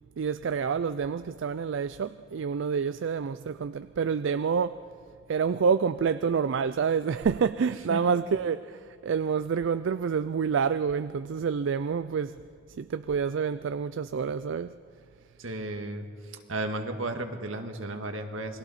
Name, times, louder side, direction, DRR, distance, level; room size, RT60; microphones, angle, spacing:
voice 1, 0.2-4.8 5.3-12.4 12.8-14.7, right 6 dB, 65° right, 0.4 m, -28 dB
voice 2, 15.4-16.0 16.5-18.6, right 2 dB, 85° right, 1.8 m, -33 dB
29.0 x 21.5 x 4.2 m
head